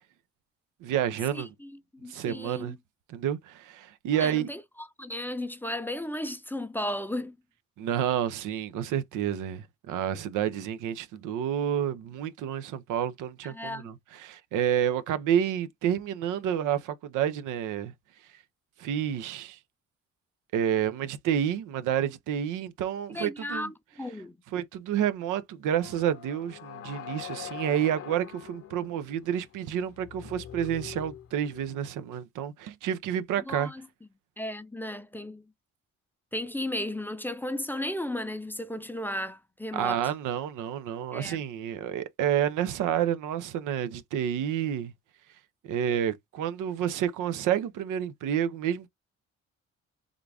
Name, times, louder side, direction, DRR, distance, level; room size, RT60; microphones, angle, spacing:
voice 1, 0.8-1.5 2.1-2.8 3.1-4.5 7.8-17.9 18.8-19.6 20.5-23.7 24.5-33.7 39.7-44.9 45.6-48.9, right 9 dB, 85° right, 0.6 m, -29 dB
voice 2, 1.3-2.8 4.1-7.4 13.4-13.9 23.1-24.4 33.5-33.9 34.4-35.4 36.3-40.1 41.1-41.4, left 1 dB, 5° left, 0.5 m, -35 dB
sound 1, 25.8-31.8, left 10 dB, 50° left, 0.8 m, -44 dB
3.7 x 2.4 x 3.3 m
cardioid pair, 90°, 30 cm